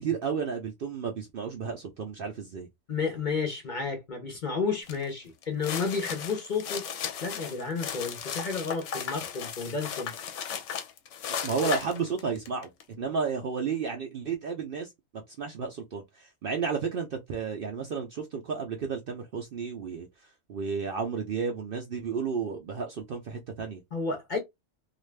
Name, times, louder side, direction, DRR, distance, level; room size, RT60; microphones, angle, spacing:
voice 1, 0.0-2.7 11.3-14.9 15.4-23.8, right 5 dB, 60° right, 0.6 m, -32 dB
voice 2, 2.9-6.8 7.2-10.1 23.9-24.4, left 4 dB, 45° left, 0.7 m, -31 dB
sound 1, 4.9-5.0 5.4-12.8, left 8 dB, 70° left, 0.9 m, -36 dB
2.5 x 2.4 x 3.2 m
omnidirectional pair, 1.4 m